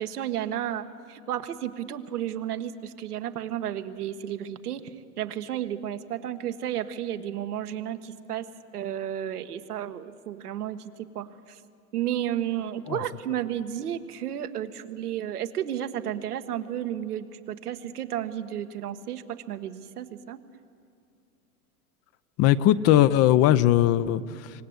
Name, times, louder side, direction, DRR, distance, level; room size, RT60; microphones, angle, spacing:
voice 1, 0.0-8.5 8.7-11.6 11.9-20.4, right 11 dB, 85° right, 8 dB, 1.4 m, -32 dB
voice 2, 22.4-24.6, left 13 dB, 35° left, 16 dB, 0.6 m, -20 dB
25.5 x 18.5 x 8.0 m, 2.3 s
hypercardioid pair, 115°, 45 cm